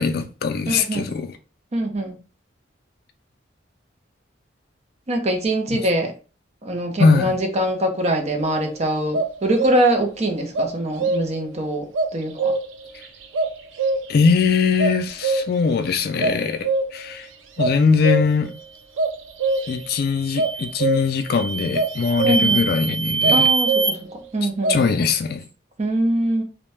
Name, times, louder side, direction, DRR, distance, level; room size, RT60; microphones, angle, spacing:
voice 1, 0.0-1.3 7.0-7.4 14.1-17.3 17.6-18.6 19.7-23.5 24.7-25.4, left 5 dB, 55° left, 0.3 m, -21 dB
voice 2, 0.7-1.1 1.7-2.2 5.1-6.1 6.6-11.9 12.1-12.5 22.2-22.7 23.3-25.0 25.8-26.4, right 1 dB, 35° right, 0.5 m, -23 dB
sound 1, 8.4-8.7 9.1-10.1 10.5-11.5 11.9-12.9 13.3-14.3 14.8-15.7 16.2-17.1 17.6-18.5 19.0-19.9 20.4-21.3 21.7-22.6 23.2-24.2 24.6-24.8, right 3 dB, 90° right, 0.4 m, -24 dB
sound 2, 19.5-19.8 20.3-20.8 21.3-23.9, right 4 dB, 70° right, 0.9 m, -23 dB
2.6 x 2.1 x 3.2 m
head